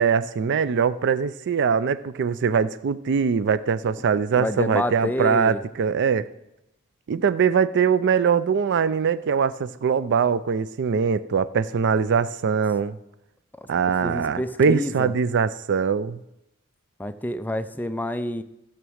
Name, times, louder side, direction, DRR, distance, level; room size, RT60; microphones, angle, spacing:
voice 1, 0.0-6.3 7.1-13.0 13.7-16.2, right 6 dB, 55° right, 16 dB, 0.4 m, -22 dB
voice 2, 4.4-5.6 13.6-13.7 14.0-15.1 17.0-18.4, left 1 dB, 10° left, 10 dB, 0.4 m, -28 dB
14.0 x 6.0 x 6.3 m, 0.88 s
head